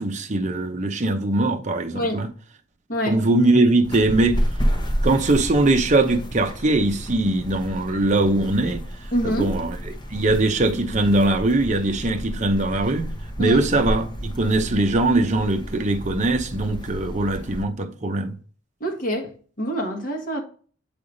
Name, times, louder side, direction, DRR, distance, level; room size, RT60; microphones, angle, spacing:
voice 1, 0.0-2.3 3.0-4.4 5.0-8.8 9.2-13.1 13.4-18.3, right 2 dB, 35° right, 0.7 m, -21 dB
voice 2, 2.9-3.2 9.1-9.5 13.4-13.6 18.8-19.3 19.6-20.4, equal, 45° left, 1.5 m, -25 dB
sound 1, 3.8-17.6, equal, 20° left, 0.9 m, -30 dB
7.9 x 3.5 x 3.9 m
head